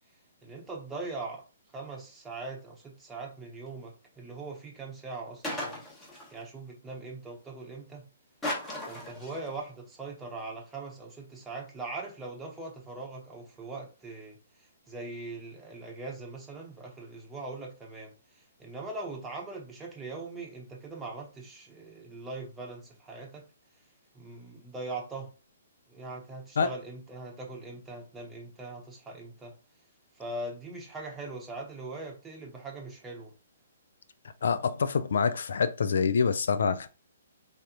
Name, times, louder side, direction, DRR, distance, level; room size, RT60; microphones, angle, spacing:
voice 1, 0.4-1.4 1.7-5.8 6.3-8.0 8.9-14.4 14.9-23.4 24.1-25.3 25.9-29.5 30.2-33.3, right 3 dB, 10° right, 0.9 m, -41 dB
sound 1, 5.4-6.4 8.4-9.6, left 1 dB, 10° left, 1.1 m, -36 dB
voice 2, 34.4-36.9, left 5 dB, 70° left, 0.3 m, -26 dB
3.4 x 2.7 x 2.5 m
hypercardioid pair, 135°, 0 cm